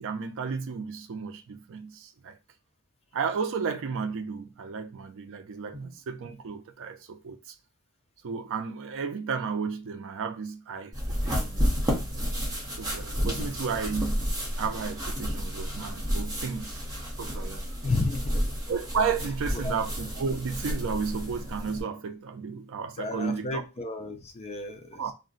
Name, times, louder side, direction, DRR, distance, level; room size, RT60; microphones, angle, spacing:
voice 1, 0.0-2.4 3.1-7.4 8.2-12.2 12.8-14.2 14.6-17.7 18.7-23.6 24.9-25.1, right 5 dB, 65° right, 0.4 m, -33 dB
sound 1, 10.9-21.8, equal, 15° right, 0.8 m, -31 dB
voice 2, 17.8-18.3 19.5-19.8 23.0-25.0, left 2 dB, 30° left, 0.4 m, -32 dB
2.4 x 2.1 x 3.7 m
head